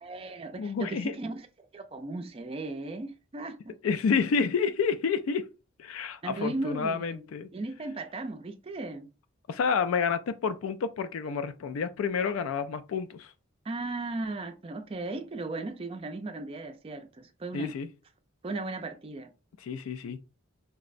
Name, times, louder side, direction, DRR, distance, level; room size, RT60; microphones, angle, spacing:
voice 1, 0.0-3.7 6.2-7.3 7.5-9.1 13.6-17.7 18.4-19.3, right 2 dB, 25° right, 0.4 m, -36 dB
voice 2, 0.6-1.2 3.8-5.5 5.8-7.5 9.5-13.3 17.5-17.9 19.6-20.2, left 5 dB, 80° left, 0.3 m, -29 dB
4.5 x 2.0 x 2.5 m
head